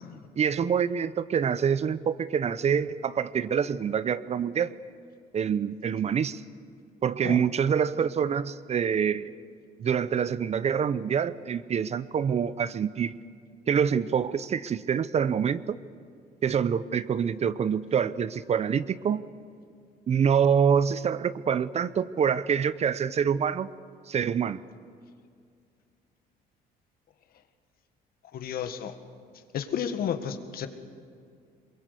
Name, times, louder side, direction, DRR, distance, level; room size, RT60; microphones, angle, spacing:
voice 1, 0.4-4.7 5.3-6.4 7.0-9.3 9.8-13.1 13.7-15.8 16.4-19.2 20.1-23.7 24.1-24.6, right 7 dB, 40° right, 16 dB, 0.7 m, -26 dB
voice 2, 28.3-28.9 29.5-30.7, left 8 dB, 60° left, 9 dB, 1.8 m, -32 dB
22.5 x 22.0 x 8.3 m, 2.3 s
cardioid pair, 110°, 17 cm